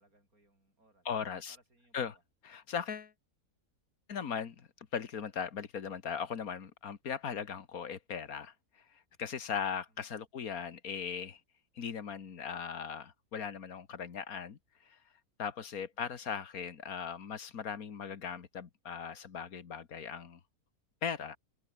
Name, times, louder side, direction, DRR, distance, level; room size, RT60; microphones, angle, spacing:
voice 1, 0.0-1.1 1.3-2.2 9.9-10.1, right 2 dB, 60° right, 8.3 m, -68 dB
voice 2, 1.1-1.6 1.9-2.2 2.4-3.1 4.1-11.4 11.8-15.0 15.4-20.4 21.0-21.4, left 7 dB, 65° left, 2.0 m, -39 dB
omnidirectional pair, 1.7 m